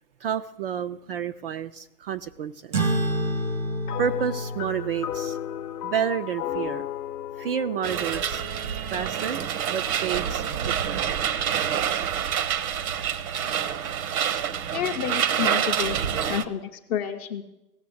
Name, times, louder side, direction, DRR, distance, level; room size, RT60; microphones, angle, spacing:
voice 1, 0.2-2.9 4.0-5.4 5.8-6.9 7.4-8.4 8.9-9.4 9.7-11.1, right 8 dB, 40° right, 10 dB, 0.4 m, -30 dB
sound 1, 2.7-7.6, right 1 dB, 90° right, 2.5 m, -30 dB
sound 2, 3.9-9.4, left 11 dB, 65° left, 0.8 m, -35 dB
sound 3, 7.8-16.4, right 9 dB, 60° right, 1.0 m, -27 dB
voice 2, 14.7-17.4, left 9 dB, 20° left, 5 dB, 0.4 m, -30 dB
15.5 x 6.8 x 7.7 m, 0.93 s
hypercardioid pair, 120°, 48 cm